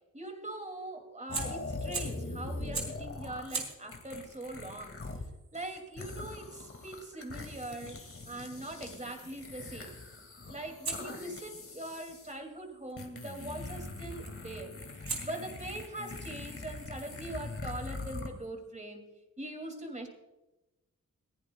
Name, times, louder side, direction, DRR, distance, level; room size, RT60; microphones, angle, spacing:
voice 1, 0.1-5.0 5.5-8.0 8.3-10.0 10.5-19.1 19.4-20.1, right 1 dB, 20° right, 4 dB, 2.6 m, -42 dB
Fire, 1.2-2.3 2.7-3.1 3.5-8.4 10.8-12.9 14.2-14.5 15.1-18.5, right 3 dB, 60° right, 3.6 m, -44 dB
sound 1, 1.3-5.3 5.5-12.3 13.0-18.3, left 3 dB, 40° left, 2.2 m, -42 dB
21.0 x 15.0 x 2.3 m, 1.0 s
cardioid pair, 75°, 32 cm